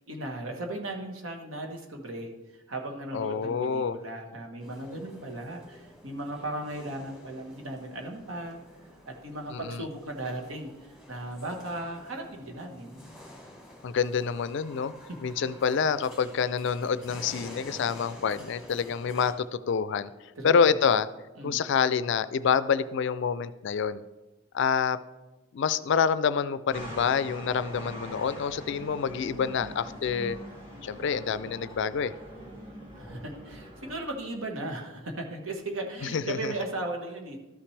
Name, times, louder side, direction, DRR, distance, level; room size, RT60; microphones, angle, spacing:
voice 1, 0.1-8.6 9.1-13.0 15.1-15.2 20.4-20.7 21.4-21.6 32.9-37.4, right 1 dB, 75° right, 3 dB, 1.3 m, -37 dB
voice 2, 3.1-4.0 9.5-9.9 13.8-14.9 15.2-20.1 20.4-21.1 21.4-24.0 24.5-25.0 25.5-30.4 30.8-32.1 36.0-36.5, left 6 dB, 60° left, 15 dB, 0.4 m, -27 dB
sound 1, 4.6-19.3, left 1 dB, 5° right, 1.5 m, -49 dB
sound 2, 26.7-34.0, equal, 25° right, 2.0 m, -43 dB
13.0 x 5.9 x 3.3 m, 1.1 s
head